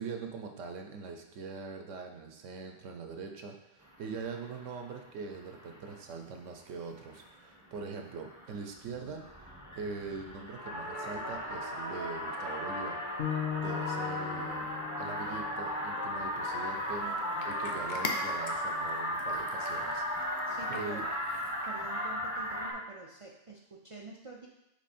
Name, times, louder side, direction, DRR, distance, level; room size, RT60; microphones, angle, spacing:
voice 1, 0.0-13.3 13.6-17.0 17.4-20.4 20.7-21.0, right 4 dB, 75° right, 4 dB, 1.1 m, -42 dB
sound 1, 3.9-4.9 5.2-6.0 6.5-6.6 7.0-7.3 7.6-22.7, equal, 15° left, 1.0 m, -36 dB
sound 2, 13.2-17.3, left 8 dB, 80° left, 1.5 m, -39 dB
Cat, 16.7-21.9, left 3 dB, 45° left, 0.7 m, -44 dB
voice 2, 17.0-17.5 20.5-21.0 21.6-24.5, right 3 dB, 45° right, -1 dB, 0.4 m, -47 dB
6.1 x 4.1 x 4.3 m, 0.94 s
omnidirectional pair, 1.3 m